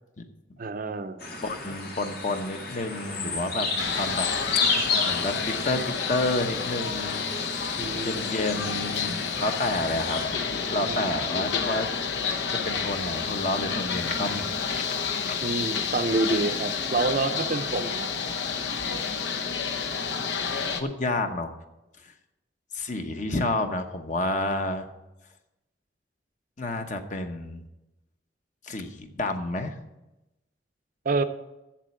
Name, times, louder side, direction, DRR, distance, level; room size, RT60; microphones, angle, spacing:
voice 1, 0.6-1.2 7.8-8.2 10.8-11.0 15.4-18.1 31.0-31.2, right 3 dB, 50° right, 10 dB, 0.6 m, -28 dB
sound 1, 1.2-10.2, left 4 dB, 65° left, 2.2 m, -32 dB
voice 2, 1.4-4.3 4.5-4.7 5.0-7.2 7.6-11.9 12.5-14.9 15.3-15.4 20.8-21.6 22.7-24.9 26.6-27.6 28.6-29.8, left 2 dB, 45° left, 6 dB, 1.0 m, -30 dB
sound 2, 3.8-20.8, left 5 dB, 80° left, 0.9 m, -30 dB
7.4 x 7.4 x 8.2 m, 0.96 s
head